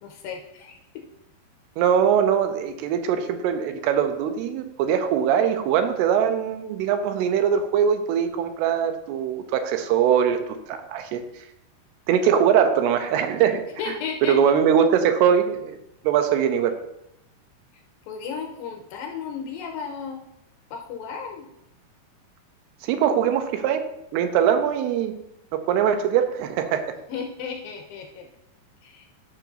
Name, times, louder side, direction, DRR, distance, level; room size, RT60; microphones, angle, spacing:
voice 1, 0.0-0.8 13.8-14.4 18.1-20.2 20.7-21.4 27.1-28.3 28.8-29.1, left 6 dB, 75° left, 2 dB, 2.4 m, -34 dB
voice 2, 1.8-11.2 12.1-13.9 14.2-15.8 16.0-16.8 22.8-23.9 24.1-25.2 25.5-27.0, right 8 dB, 85° right, 8 dB, 2.8 m, -22 dB
11.5 x 5.9 x 2.6 m, 0.83 s
omnidirectional pair, 4.6 m